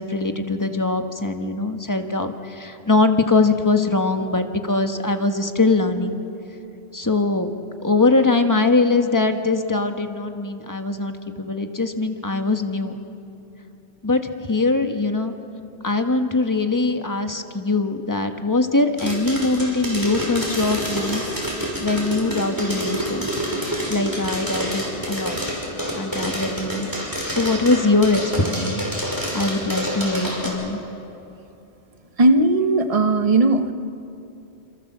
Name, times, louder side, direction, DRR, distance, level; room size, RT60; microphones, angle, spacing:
voice 1, 0.0-6.2 6.9-7.5 7.8-13.0 14.0-15.3 15.8-21.2 21.8-23.3 23.9-25.4 25.9-28.8 29.3-30.8, left 3 dB, 15° left, 1.4 m, -22 dB
sound 1, 19.0-30.5, equal, 15° right, 5.8 m, -27 dB
voice 2, 32.2-33.7, right 2 dB, 35° right, 1.1 m, -17 dB
27.5 x 27.5 x 7.4 m
omnidirectional pair, 1.1 m